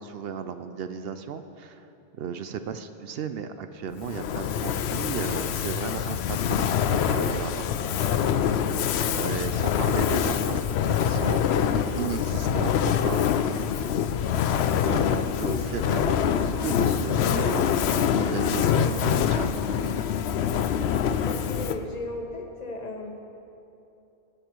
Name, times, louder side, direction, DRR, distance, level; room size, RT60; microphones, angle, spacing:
voice 1, 0.0-1.9 2.2-7.6 9.2-13.2 14.3-19.5, right 7 dB, 70° right, 10 dB, 0.8 m, -35 dB
Fire, 4.0-21.9, left 8 dB, 75° left, 0.8 m, -25 dB
voice 2, 21.1-23.2, left 1 dB, 40° left, 2 dB, 1.2 m, -36 dB
19.0 x 8.0 x 4.5 m, 2.8 s
omnidirectional pair, 1.1 m